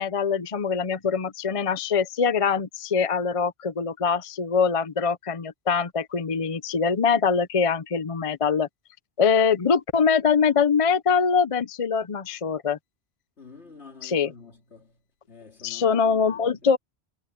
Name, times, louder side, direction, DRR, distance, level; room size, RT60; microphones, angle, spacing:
voice 1, 0.0-8.7 9.2-12.8 14.0-14.3 15.6-16.8, left 6 dB, 35° left, 0.6 m, -23 dB
voice 2, 13.4-15.0 15.3-16.7, left 4 dB, 85° left, 3.0 m, -48 dB
omnidirectional pair, 1.1 m